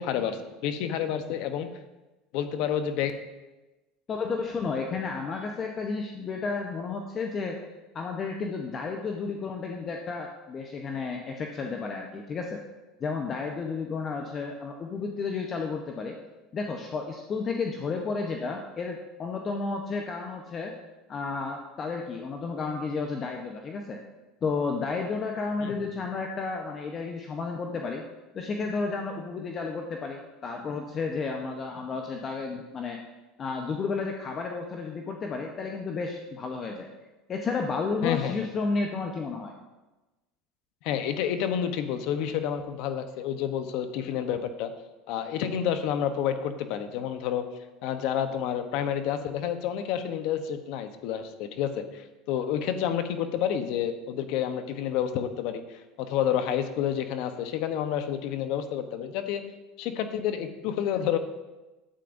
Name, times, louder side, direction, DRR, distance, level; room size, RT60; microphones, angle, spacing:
voice 1, 0.0-1.7 2.3-3.1 25.6-25.9 38.0-38.3 40.8-44.7 45.1-47.4 47.8-59.4 59.8-61.2, left 9 dB, 65° left, 9 dB, 0.8 m, -29 dB
voice 2, 4.1-7.6 7.9-12.6 13.0-16.2 16.5-20.7 21.1-24.0 24.4-28.0 28.3-33.0 33.4-36.9 37.3-39.5, left 4 dB, 35° left, 2 dB, 0.8 m, -32 dB
11.5 x 8.4 x 2.6 m, 1.1 s
supercardioid pair, 110°, 0 cm